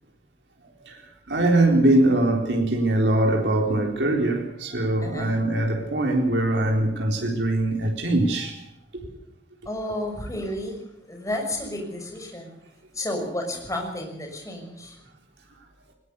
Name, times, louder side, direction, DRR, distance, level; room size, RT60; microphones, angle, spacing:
voice 1, 1.3-8.6 8.9-9.0, right 1 dB, 80° right, 4.0 m, -22 dB
voice 2, 9.7-12.5 12.9-15.0, left 1 dB, 20° left, 6.1 m, -32 dB
20.0 x 20.0 x 6.9 m
head